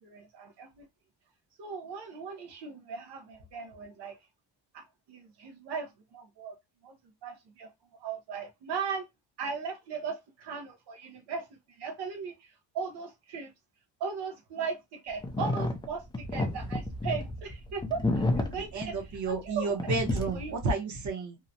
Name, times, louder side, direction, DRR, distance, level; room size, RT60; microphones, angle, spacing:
voice 1, 0.0-0.8 1.6-4.2 4.7-6.5 6.8-6.9 7.2-7.7 8.0-9.0 9.4-11.5 11.8-13.5 14.0-18.9 19.3-19.8 20.3-20.7, right 5 dB, 75° right, 0.8 m, -38 dB
sound 1, 15.2-19.5 19.8-20.6, left 2 dB, 10° left, 0.4 m, -31 dB
voice 2, 18.5-21.4, right 4 dB, 45° right, 0.9 m, -32 dB
2.8 x 2.1 x 2.6 m
cardioid pair, 120°, 41 cm